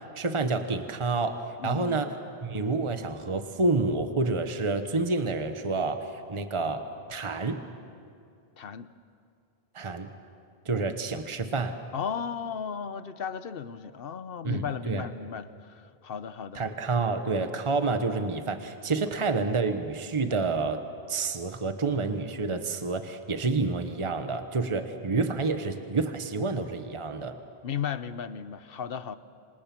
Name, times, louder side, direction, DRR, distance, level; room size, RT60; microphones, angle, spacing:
voice 1, 0.1-2.1 2.4-7.6 9.7-10.1 10.6-11.8 14.4-15.1 16.5-20.8 21.1-27.4, right 3 dB, 30° right, 7 dB, 1.2 m, -29 dB
voice 2, 1.6-2.0 8.6-8.9 11.9-16.8 27.6-29.2, left 7 dB, 65° left, 13 dB, 1.0 m, -35 dB
27.0 x 26.5 x 6.0 m, 2.4 s
omnidirectional pair, 1.1 m